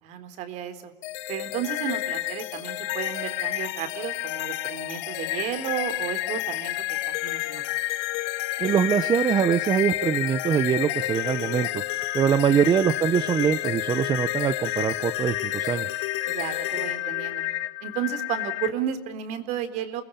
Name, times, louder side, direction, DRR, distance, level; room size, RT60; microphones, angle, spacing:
voice 1, 0.0-0.9 1.3-7.6 16.3-17.4 17.8-20.0, right 9 dB, 55° right, 10 dB, 4.0 m, -33 dB
sound 1, 1.0-18.7, left 17 dB, 70° left, 2.3 m, -30 dB
voice 2, 8.6-11.8 12.1-15.9, right 8 dB, 30° right, 10 dB, 1.2 m, -23 dB
29.0 x 21.0 x 8.8 m, 0.91 s
supercardioid pair, 130°, 14 cm